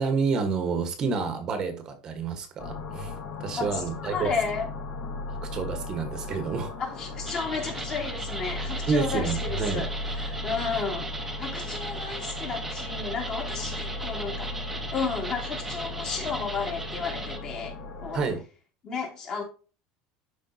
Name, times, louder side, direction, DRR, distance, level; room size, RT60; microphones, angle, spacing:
voice 1, 0.0-3.1 3.4-4.3 5.3-6.7 8.9-9.9 18.1-18.4, right 5 dB, 30° right, 1.3 m, -29 dB
sound 1, 2.6-18.4, left 2 dB, 85° left, 4.8 m, -36 dB
voice 2, 3.6-4.7 6.8-14.5 14.9-17.7 18.0-18.3 18.8-19.4, left 5 dB, 30° left, 2.8 m, -33 dB
sound 2, 7.3-17.4, right 2 dB, 5° right, 1.1 m, -37 dB
11.5 x 5.0 x 2.8 m
cardioid pair, 165°, 2 cm